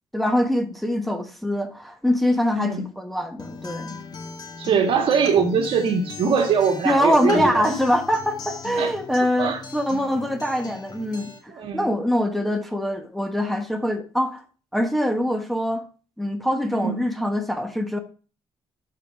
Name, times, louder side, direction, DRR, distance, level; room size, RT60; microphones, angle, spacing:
voice 1, 0.1-3.9 6.8-14.4 14.7-15.8 16.2-18.0, equal, ahead, 4 dB, 1.2 m, -23 dB
voice 2, 2.6-2.9 4.6-7.7 8.8-8.9 9.4-9.6 11.5-11.9 16.7-17.0, right 6 dB, 65° right, 3 dB, 1.9 m, -22 dB
Acoustic guitar, 3.4-11.4, left 5 dB, 40° left, 2.0 m, -38 dB
12.0 x 4.9 x 3.5 m, 0.37 s
cardioid pair, 115°, 10 cm